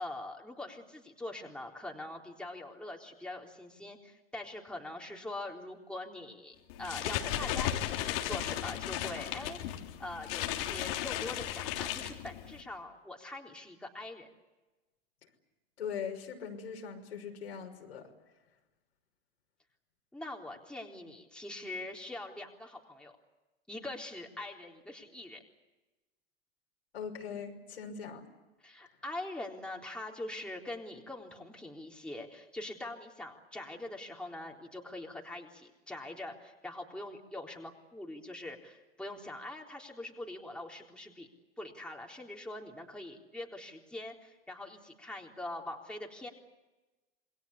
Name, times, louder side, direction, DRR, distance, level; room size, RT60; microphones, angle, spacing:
voice 1, 0.0-14.3 20.1-23.2 23.7-25.4 28.6-41.3 41.6-46.3, left 2 dB, 5° left, 0 dB, 3.8 m, -43 dB
sound 1, 6.7-12.6, left 12 dB, 65° left, 3.2 m, -35 dB
voice 2, 15.8-18.1 26.9-28.2, left 7 dB, 85° left, 2 dB, 5.8 m, -40 dB
27.5 x 21.5 x 8.4 m, 1.1 s
hypercardioid pair, 105°, 31 cm